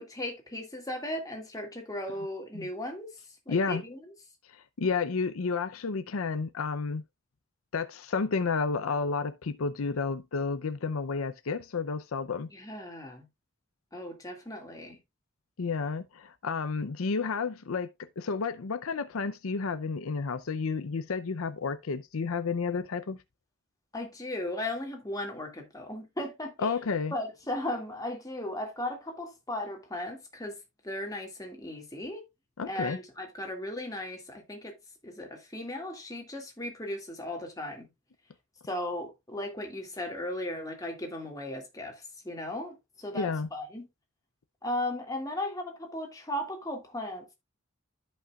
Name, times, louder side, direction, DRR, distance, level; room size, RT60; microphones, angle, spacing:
voice 1, 0.0-3.2 3.5-4.0 12.5-13.3 13.9-15.0 23.9-26.8 27.1-30.6 30.8-32.2 32.7-34.8 35.0-37.9 38.7-42.0 42.2-43.9 44.6-47.3, left 1 dB, 15° left, 2.1 m, -36 dB
voice 2, 3.5-3.8 4.5-7.0 7.7-12.5 15.6-23.2 26.6-27.1 32.6-33.0 43.1-43.5, left 4 dB, 85° left, 0.6 m, -31 dB
13.5 x 5.4 x 2.4 m
head